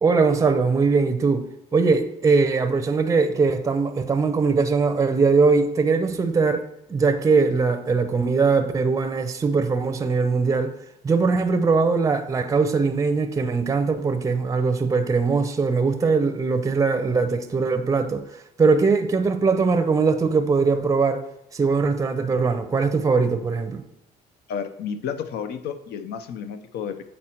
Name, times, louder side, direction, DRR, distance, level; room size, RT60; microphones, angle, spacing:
voice 1, 0.0-10.7 11.0-21.2 21.5-23.8, right 4 dB, 20° right, 0.5 m, -21 dB
voice 2, 24.5-27.0, left 7 dB, 70° left, 0.6 m, -31 dB
7.6 x 4.2 x 4.4 m
cardioid pair, 110°, 17 cm